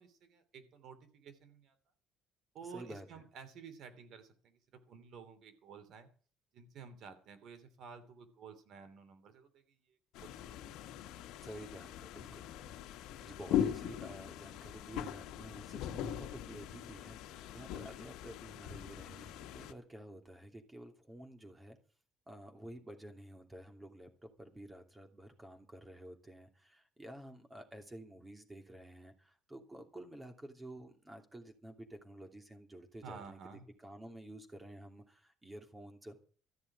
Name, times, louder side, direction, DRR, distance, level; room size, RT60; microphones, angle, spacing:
voice 1, 0.0-1.7 2.5-6.1 6.5-10.8 33.0-33.7, right 5 dB, 60° right, 9 dB, 3.0 m, -52 dB
voice 2, 2.7-3.1 11.4-12.5 12.8-12.9 13.2-21.8 22.3-36.2, right 1 dB, 10° right, 4 dB, 2.8 m, -51 dB
sound 1, 10.1-19.7, left 10 dB, 90° left, 1.4 m, -40 dB
14.0 x 6.8 x 9.9 m, 0.42 s
cardioid pair, 135°, 0 cm